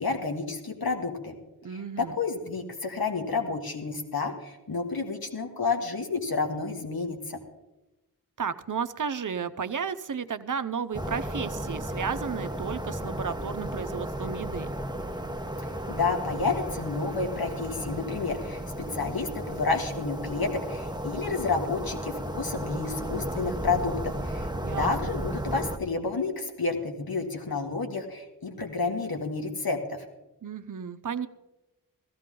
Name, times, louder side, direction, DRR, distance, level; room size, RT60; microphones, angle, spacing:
voice 1, 0.0-1.3 2.0-7.4 15.9-24.5 24.8-30.0, left 4 dB, 70° left, 4 dB, 2.0 m, -30 dB
voice 2, 1.6-2.2 8.4-14.7 24.6-25.2 30.4-31.3, right 6 dB, 55° right, 12 dB, 0.8 m, -33 dB
sound 1, 10.9-25.8, right 1 dB, 10° right, 1.1 m, -34 dB
16.5 x 14.0 x 3.8 m, 0.99 s
wide cardioid pair, 60°, 38 cm